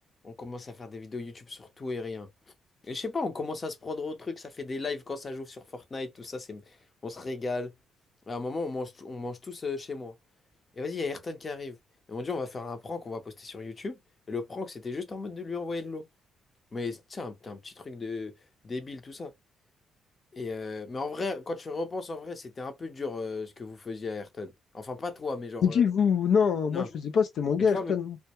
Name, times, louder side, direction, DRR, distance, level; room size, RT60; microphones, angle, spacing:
voice 1, 0.2-2.3 2.8-6.8 7.0-7.7 8.3-10.2 10.8-11.8 12.1-14.0 14.3-16.0 16.7-18.3 18.6-19.3 20.3-25.8 26.7-26.9 27.7-28.0, left 3 dB, 35° left, 0.6 m, -35 dB
voice 2, 25.6-28.2, left 7 dB, 70° left, 0.3 m, -24 dB
2.2 x 2.1 x 2.8 m
cardioid pair, 90°, 0 cm